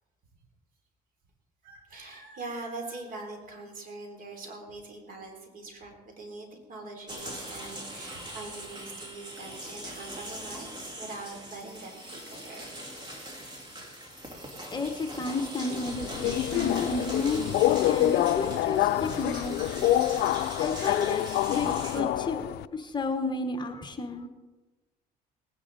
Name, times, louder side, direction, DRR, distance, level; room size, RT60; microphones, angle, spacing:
voice 1, 1.6-12.8 18.6-19.2 20.4-20.6 21.5-21.9, right 2 dB, 55° right, 2 dB, 3.5 m, -43 dB
sound 1, 7.1-22.0, right 1 dB, 25° right, 2.6 m, -41 dB
voice 2, 14.7-17.4 17.8-19.9 20.6-24.3, left 3 dB, 25° left, 6 dB, 1.2 m, -32 dB
Subway metro underground, 15.9-22.7, left 14 dB, 70° left, 0.4 m, -26 dB
19.0 x 10.0 x 4.1 m, 1.2 s
cardioid pair, 110°, 17 cm